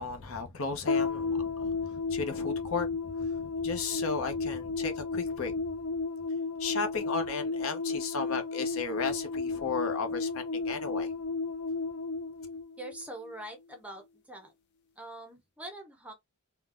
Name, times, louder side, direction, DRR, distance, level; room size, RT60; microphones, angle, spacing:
voice 1, 0.0-5.7 6.6-11.1, left 4 dB, 70° left, 0.7 m, -35 dB
sound 1, 0.9-13.4, left 4 dB, 50° left, 0.4 m, -33 dB
voice 2, 12.8-14.5 15.0-16.1, right 1 dB, 5° right, 0.6 m, -44 dB
3.8 x 2.1 x 2.4 m
head